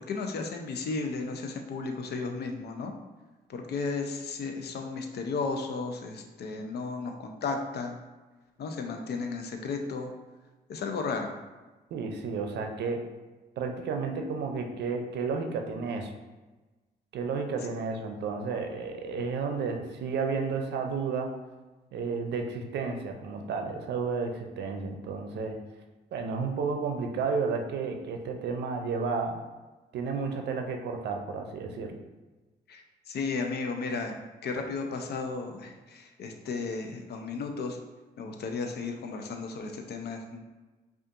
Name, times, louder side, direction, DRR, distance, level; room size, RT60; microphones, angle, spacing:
voice 1, 0.1-2.9 3.5-8.0 8.6-10.1 10.7-11.3 32.7-32.8 33.1-34.2 34.4-37.8 38.2-40.4, left 4 dB, 70° left, 4 dB, 0.6 m, -34 dB
voice 2, 11.9-13.0 13.6-16.1 17.1-21.4 21.9-25.6 26.1-29.4 29.9-32.0, right 4 dB, 80° right, 4 dB, 0.5 m, -32 dB
5.2 x 2.5 x 2.5 m, 1.2 s
cardioid pair, 80°, 17 cm